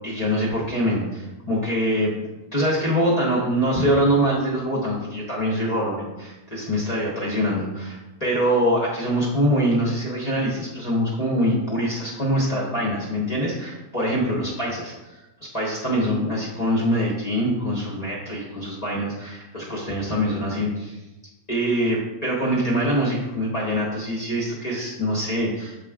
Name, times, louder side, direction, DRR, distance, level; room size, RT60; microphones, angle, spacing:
voice 1, 0.0-2.2 2.5-14.9 15.5-21.0 21.5-25.8, equal, 25° left, -6 dB, 1.3 m, -24 dB
8.0 x 4.4 x 3.7 m, 1.1 s
omnidirectional pair, 1.6 m